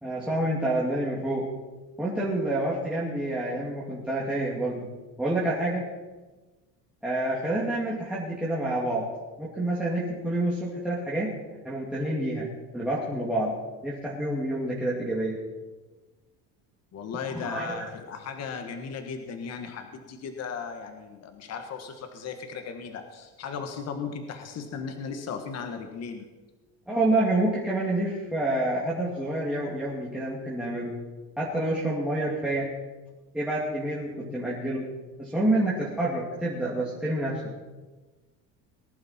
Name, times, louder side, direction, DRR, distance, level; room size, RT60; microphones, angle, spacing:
voice 1, 0.0-1.4 2.0-4.9 5.2-5.8 7.0-9.1 9.4-11.3 11.6-12.5 12.7-13.5 13.8-15.4 17.3-17.9 26.9-30.9 31.4-32.7 33.3-34.9 35.2-37.4, right 1 dB, ahead, -7 dB, 2.4 m, -28 dB
voice 2, 16.9-26.2, left 5 dB, 40° left, 6 dB, 1.6 m, -36 dB
19.5 x 11.0 x 4.4 m, 1.2 s
cardioid pair, 145°, 39 cm